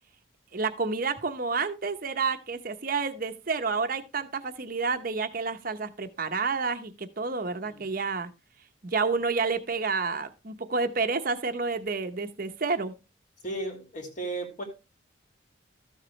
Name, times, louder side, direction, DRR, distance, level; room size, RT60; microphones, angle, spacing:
voice 1, 0.5-8.3 8.8-12.9, right 4 dB, 50° right, 0.9 m, -29 dB
voice 2, 13.4-14.6, right 2 dB, 40° left, 2.7 m, -35 dB
13.5 x 6.9 x 3.2 m
head